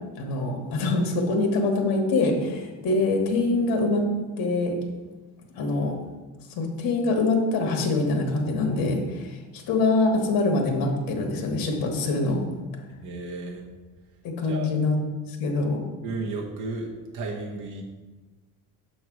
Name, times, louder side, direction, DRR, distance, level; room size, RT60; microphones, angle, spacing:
voice 1, 0.2-4.1 4.4-4.8 5.6-5.9 6.5-12.4 14.2-15.0 15.3-15.8, left 3 dB, 65° left, 2 dB, 1.2 m, -24 dB
voice 2, 13.0-13.7 14.5-14.7 16.0-17.8, right 3 dB, 50° right, -2 dB, 1.0 m, -33 dB
6.8 x 3.2 x 6.0 m, 1.2 s
cardioid pair, 170°, 38 cm